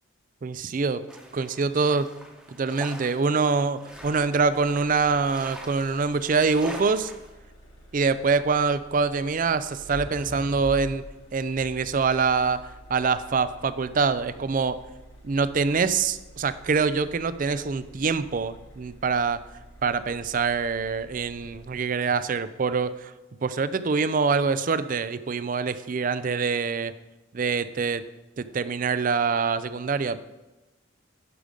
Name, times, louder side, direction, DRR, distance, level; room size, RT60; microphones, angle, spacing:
voice 1, 0.4-1.0 1.3-2.1 2.6-7.1 7.9-11.0 11.3-14.8 15.2-19.4 19.8-23.1 23.4-26.9 27.3-28.0 28.4-30.2, right 4 dB, 40° right, 14 dB, 0.4 m, -25 dB
sound 1, 1.1-7.3, right 1 dB, 5° right, 1.0 m, -44 dB
sound 2, 3.9-22.2, equal, 75° left, 1.7 m, -47 dB
11.5 x 5.2 x 5.1 m, 1.1 s
head